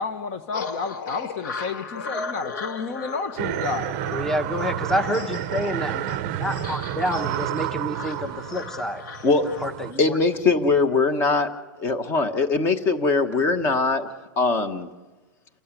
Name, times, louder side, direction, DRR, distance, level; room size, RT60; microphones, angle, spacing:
voice 1, 0.0-4.1, left 5 dB, 35° left, 1.4 m, -31 dB
sound 1, 0.5-9.7, left 5 dB, 60° left, 3.0 m, -36 dB
sound 2, 3.4-9.9, right 14 dB, 35° right, 0.8 m, -30 dB
voice 2, 4.1-9.0 9.6-10.2, equal, 5° left, 1.0 m, -28 dB
voice 3, 10.0-11.5 11.8-14.1 14.4-14.9, left 3 dB, 20° left, 1.4 m, -21 dB
29.0 x 15.5 x 9.9 m
supercardioid pair, 170°, 11 cm